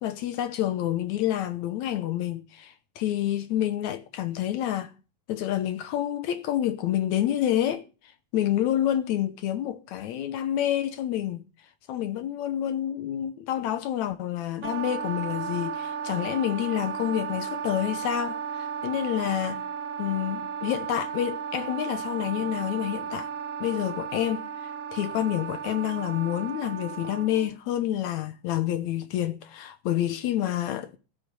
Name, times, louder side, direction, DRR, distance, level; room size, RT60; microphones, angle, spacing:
voice 1, 0.0-4.9 5.3-7.9 8.3-11.4 11.9-19.7 20.0-23.3 23.6-30.9, left 12 dB, 75° left, 2.2 m, -28 dB
Wind instrument woodwind instrument, 14.6-27.5, right 7 dB, 35° right, 1.6 m, -34 dB
15.0 x 8.4 x 6.9 m
omnidirectional pair, 3.4 m